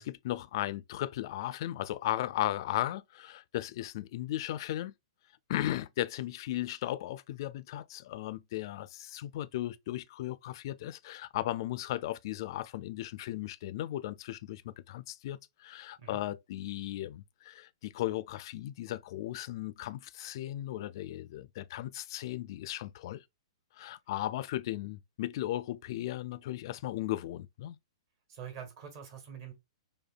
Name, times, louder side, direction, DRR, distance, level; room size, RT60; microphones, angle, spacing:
voice 1, 0.0-4.9 5.5-23.2 23.8-27.8, left 14 dB, 50° left, 0.3 m, -36 dB
voice 2, 28.3-29.5, right 8 dB, 45° right, 1.5 m, -45 dB
5.0 x 2.2 x 2.4 m
hypercardioid pair, 145°, 3 cm